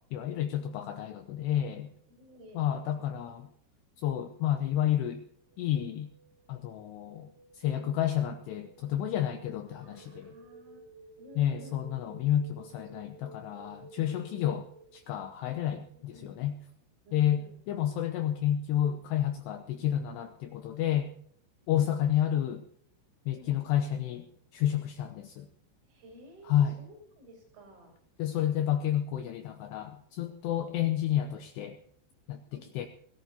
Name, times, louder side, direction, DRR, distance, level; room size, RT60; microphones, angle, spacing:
voice 1, 0.1-1.9 2.5-3.5 4.0-5.2 5.6-6.1 6.5-10.3 11.4-16.5 17.1-21.1 21.7-22.6 23.3-24.3 24.5-25.5 26.4-26.8 28.2-31.8 32.3-32.9, left 11 dB, 80° left, 8 dB, 2.4 m, -30 dB
voice 2, 2.1-3.0 7.6-8.0 9.8-10.8 11.2-11.8 12.7-13.0 15.4-15.6 15.9-16.3 17.1-17.6 23.4-23.5 25.9-28.0 32.5-32.7, left 1 dB, 85° right, -1 dB, 8.7 m, -52 dB
sound 1, 5.3-15.2, right 3 dB, 55° right, 5.3 m, -54 dB
21.5 x 16.5 x 2.8 m, 0.68 s
omnidirectional pair, 5.8 m